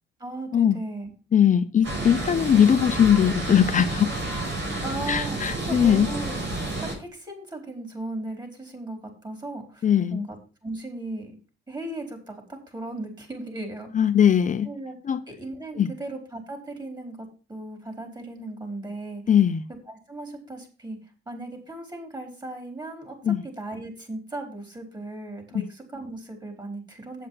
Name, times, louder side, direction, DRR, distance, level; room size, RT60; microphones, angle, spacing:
voice 1, 0.2-1.1 4.8-6.5 6.8-9.8 10.1-10.4 10.6-11.4 11.7-14.1 14.6-15.0 15.3-17.2 17.5-19.3 19.9-27.3, right 2 dB, 20° right, 4.7 m, -37 dB
voice 2, 1.3-4.1 5.1-6.1 9.8-10.3 13.9-14.7 15.0-15.2 15.8-15.9 19.3-19.6 23.2-23.4 25.5-25.7, left 9 dB, 40° left, 0.6 m, -20 dB
sound 1, 1.8-6.9, right 2 dB, 70° right, 5.9 m, -30 dB
8.3 x 7.8 x 5.8 m
cardioid pair, 90°, 20 cm